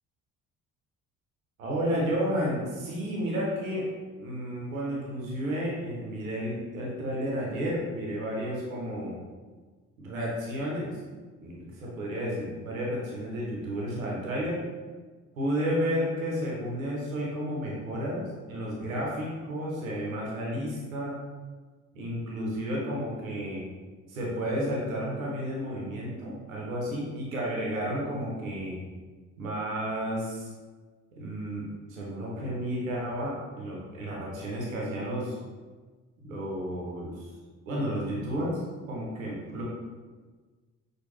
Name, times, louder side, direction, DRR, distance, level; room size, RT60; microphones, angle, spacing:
voice 1, 1.6-3.9 4.2-9.2 10.0-11.0 11.4-14.6 15.4-21.2 21.9-23.6 24.1-28.8 29.4-30.5 31.1-35.4 36.3-37.3 37.7-38.6 38.9-39.6, equal, 90° right, -4 dB, 0.9 m, -32 dB
6.3 x 2.5 x 3.1 m, 1.4 s
hypercardioid pair, 50°, 39 cm